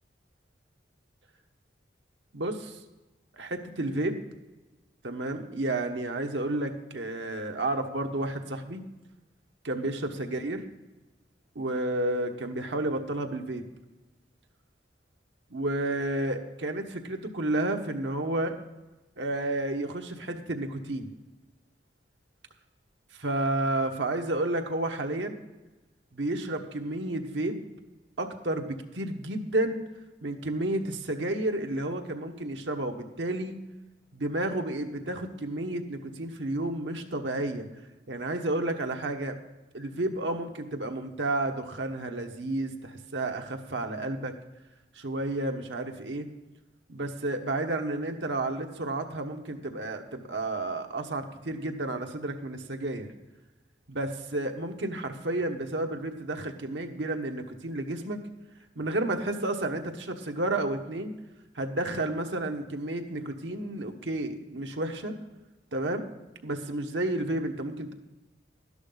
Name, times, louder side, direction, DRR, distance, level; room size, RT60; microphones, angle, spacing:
voice 1, 2.3-2.8 3.3-4.2 5.0-8.9 9.6-10.7 11.5-13.6 15.5-18.6 19.2-21.1 23.2-25.4 26.1-27.6 28.2-29.8 30.2-33.6 34.1-37.7 38.1-39.4 39.7-44.4 44.9-46.3 46.9-53.1 53.9-58.2 58.7-61.1 61.5-65.1 65.7-66.1 66.4-67.9, right 2 dB, 90° right, 4 dB, 1.2 m, -31 dB
12.0 x 11.0 x 3.9 m, 1.1 s
head